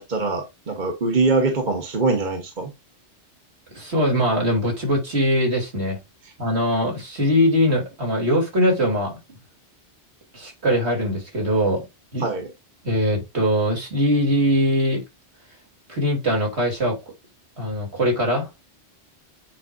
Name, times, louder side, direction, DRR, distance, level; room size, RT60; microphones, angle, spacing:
voice 1, 0.0-2.7 12.2-12.5, right 3 dB, 45° right, 1.4 m, -23 dB
voice 2, 3.7-6.0 6.4-9.2 10.3-11.9 12.1-12.3 12.8-15.0 15.9-17.0 17.6-18.7, equal, 70° right, 3.6 m, -21 dB
9.2 x 4.9 x 2.6 m
omnidirectional pair, 1.2 m